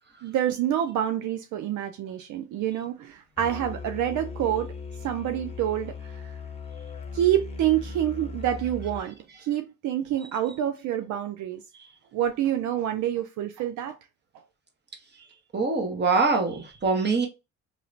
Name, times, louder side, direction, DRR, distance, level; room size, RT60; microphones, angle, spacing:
voice 1, 0.2-4.7 5.0-6.4 7.1-11.6 12.1-14.0, right 11 dB, 75° right, 0.5 m, -27 dB
Musical instrument, 3.4-9.0, left 4 dB, 20° left, 0.8 m, -38 dB
voice 2, 15.5-17.3, right 4 dB, 35° right, 1.1 m, -24 dB
3.1 x 3.0 x 2.5 m
cardioid pair, 90°, 30 cm